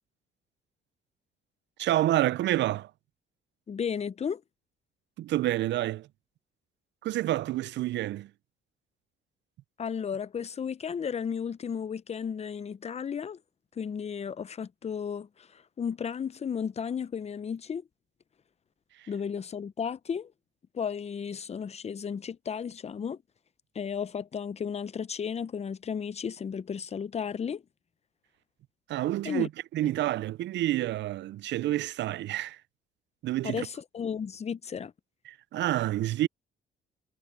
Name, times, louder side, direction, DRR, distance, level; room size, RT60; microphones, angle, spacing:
voice 1, 1.8-2.9 5.2-6.1 7.0-8.3 19.0-19.1 28.9-32.6 33.2-33.7 35.3-36.3, right 14 dB, 65° right, 0.4 m, -28 dB
voice 2, 3.7-4.4 9.8-13.4 13.8-17.9 19.1-20.3 20.7-23.2 23.7-27.6 29.2-29.5 33.4-34.9, left 7 dB, 30° left, 0.6 m, -34 dB
cardioid pair, 90°, 20 cm